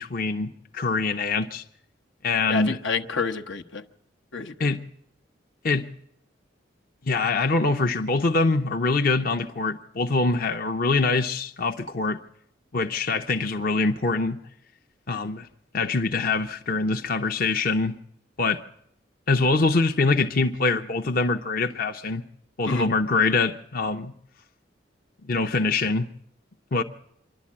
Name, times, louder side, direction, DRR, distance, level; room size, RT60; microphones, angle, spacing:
voice 1, 0.0-1.6 2.2-2.8 4.6-4.8 5.6-5.9 7.1-12.2 12.7-14.4 15.1-15.5 15.7-18.0 18.4-18.6 19.3-22.2 22.6-24.1 25.3-26.1 26.7-26.8, left 3 dB, 50° left, 0.8 m, -24 dB
voice 2, 2.5-3.8 4.3-4.7 22.7-22.9, left 5 dB, 80° left, 1.1 m, -29 dB
25.5 x 11.5 x 8.6 m
head